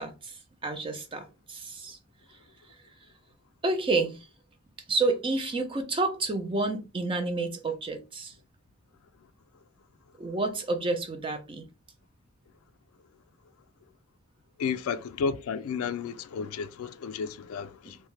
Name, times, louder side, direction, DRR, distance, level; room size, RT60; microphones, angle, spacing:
voice 1, 0.0-2.0 3.6-4.2 4.9-8.3 10.2-11.6 17.8-17.9, right 3 dB, 25° right, 0.4 m, -30 dB
voice 2, 14.6-18.0, left 6 dB, 80° left, 0.3 m, -32 dB
2.7 x 2.0 x 3.1 m
head